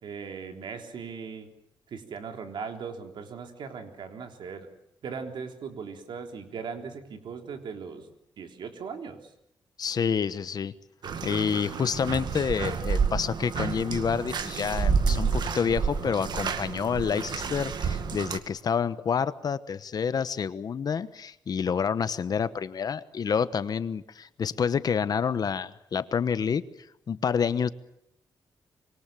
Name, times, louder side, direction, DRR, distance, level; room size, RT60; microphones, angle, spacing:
voice 1, 0.0-1.5 1.9-4.7 5.0-9.2, right 5 dB, 85° right, 5 dB, 3.6 m, -39 dB
voice 2, 9.8-10.7 11.2-26.7 27.1-27.7, left 6 dB, 55° left, 14 dB, 1.1 m, -28 dB
Bathtub (filling or washing), 11.0-18.4, right 6 dB, 65° right, 2.0 m, -29 dB
25.5 x 24.0 x 7.6 m, 0.78 s
wide cardioid pair, 135°, 8 cm